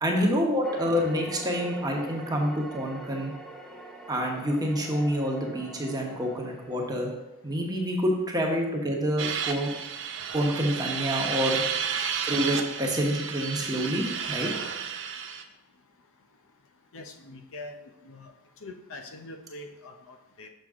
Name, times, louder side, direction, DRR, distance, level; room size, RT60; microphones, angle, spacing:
voice 1, 0.0-3.3 4.1-7.1 7.4-9.7 10.3-11.6 12.3-14.5, equal, 20° right, 0 dB, 1.1 m, -27 dB
sound 1, 0.6-7.1, right 1 dB, ahead, 0.6 m, -44 dB
sound 2, 9.2-15.4, right 7 dB, 55° right, 0.6 m, -32 dB
voice 2, 16.9-18.3 18.6-20.5, left 2 dB, 65° left, 5 dB, 0.6 m, -44 dB
6.5 x 6.1 x 3.6 m, 0.95 s
head